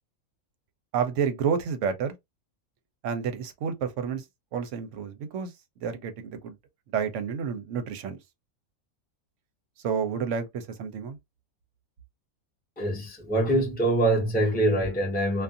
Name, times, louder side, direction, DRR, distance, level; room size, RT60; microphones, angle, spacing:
voice 1, 0.9-2.1 3.0-4.2 4.5-5.5 5.8-6.6 6.9-8.2 9.8-11.2, right 7 dB, 65° right, 0.9 m, -30 dB
voice 2, 12.8-15.4, right 1 dB, 10° left, 0.7 m, -24 dB
2.4 x 2.4 x 2.6 m
omnidirectional pair, 1.5 m